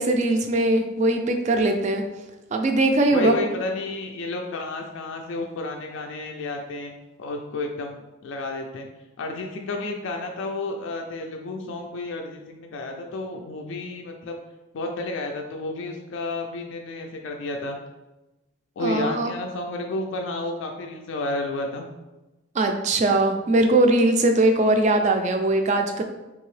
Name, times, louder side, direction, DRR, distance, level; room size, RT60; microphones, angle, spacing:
voice 1, 0.0-2.0 2.5-3.4 18.8-19.3 22.6-26.0, right 2 dB, 35° right, 5 dB, 0.3 m, -20 dB
voice 2, 3.1-6.9 7.2-8.9 9.2-14.4 14.7-17.8 18.8-21.9, left 2 dB, 65° left, 2 dB, 0.3 m, -31 dB
3.6 x 2.7 x 3.1 m, 1.1 s
head